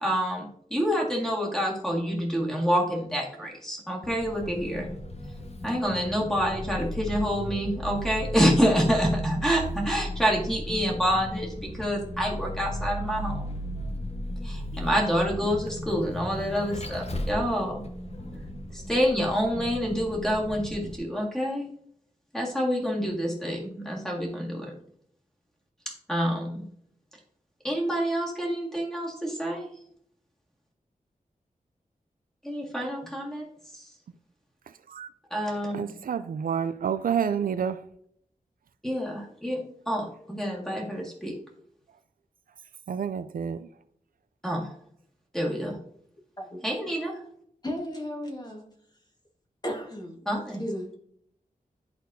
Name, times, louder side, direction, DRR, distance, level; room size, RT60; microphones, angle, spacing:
voice 1, 0.0-4.9 5.6-13.5 14.4-17.8 18.7-21.7 22.3-24.7 25.9-26.7 27.6-29.7 32.4-33.5 33.7-33.8 35.3-35.8 38.8-41.3 44.4-44.7 45.3-45.8 46.6-47.2 50.3-50.6, equal, 5° left, 1.9 m, -27 dB
Vehicle, 4.0-21.0, equal, 45° left, 0.9 m, -35 dB
voice 2, 34.7-35.1 35.7-37.9 42.9-43.7, right 7 dB, 80° right, 0.4 m, -29 dB
voice 3, 47.6-48.6 49.6-50.2 50.5-50.9, equal, 30° left, 1.6 m, -34 dB
11.0 x 4.2 x 2.7 m
wide cardioid pair, 105°, 15 cm